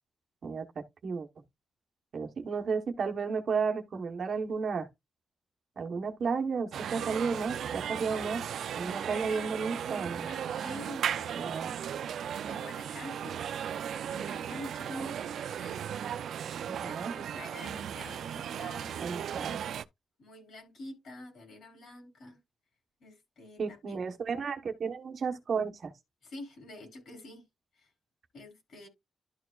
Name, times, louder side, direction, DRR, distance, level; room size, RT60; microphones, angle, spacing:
voice 1, 0.4-1.3 2.1-4.9 5.8-8.4 8.7-10.3 11.3-11.7 16.6-17.1 19.0-19.6 23.6-25.9, right 5 dB, 50° right, 1.1 m, -33 dB
sound 1, 6.7-19.8, right 9 dB, 75° right, 0.4 m, -36 dB
voice 2, 8.9-9.5 10.3-12.0 12.5-13.4 14.0-15.8 16.5-19.1 20.2-22.4 23.0-24.0 26.2-27.5 27.8-27.9 28.3-28.9, left 2 dB, 60° left, 4.0 m, -47 dB
12.0 x 4.5 x 2.4 m
wide cardioid pair, 165°, 0 cm